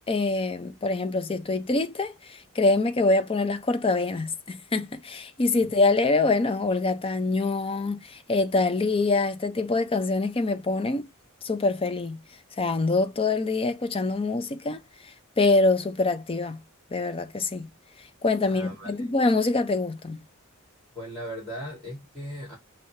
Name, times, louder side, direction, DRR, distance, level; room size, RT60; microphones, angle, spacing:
voice 1, 0.1-11.1 11.4-12.2 12.6-14.8 15.4-16.6 16.9-17.7 18.2-20.2, left 3 dB, 25° left, 0.5 m, -25 dB
voice 2, 18.4-19.1 20.9-22.6, equal, 10° left, 2.2 m, -38 dB
5.5 x 2.7 x 3.2 m
head